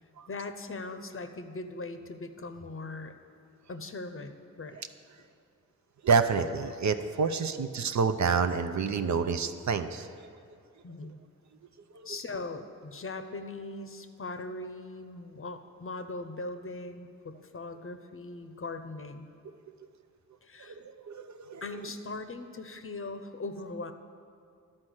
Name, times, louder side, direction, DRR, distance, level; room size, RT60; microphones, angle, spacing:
voice 1, 0.3-3.1 3.7-4.8 10.8-11.2 12.0-19.3 20.4-20.8 21.6-23.9, left 2 dB, 40° left, 8 dB, 0.7 m, -40 dB
voice 2, 6.0-10.1 20.7-20.8 21.0-21.6, right 5 dB, 55° right, 9 dB, 0.5 m, -28 dB
11.5 x 4.3 x 6.3 m, 2.3 s
cardioid pair, 40°, 34 cm